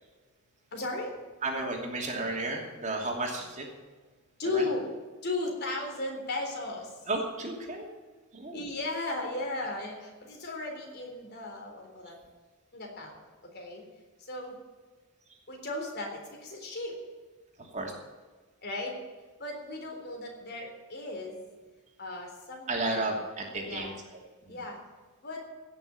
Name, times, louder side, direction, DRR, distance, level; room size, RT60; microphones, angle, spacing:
voice 1, 0.7-1.1 4.4-4.9 5.2-6.8 8.5-12.1 12.7-13.1 13.5-13.8 14.3-14.5 15.5-16.1 16.4-16.9 18.6-18.9 19.4-21.4 22.0-23.1 23.6-23.9 24.5-24.8 25.2-25.4, left 2 dB, 50° left, 1 dB, 3.8 m, -35 dB
voice 2, 1.4-3.7 4.5-4.6 7.1-7.9 8.3-8.6 17.6-17.9 22.7-24.2 24.5-24.6, right 2 dB, 35° right, 0 dB, 2.8 m, -33 dB
17.0 x 7.0 x 8.5 m, 1.3 s
head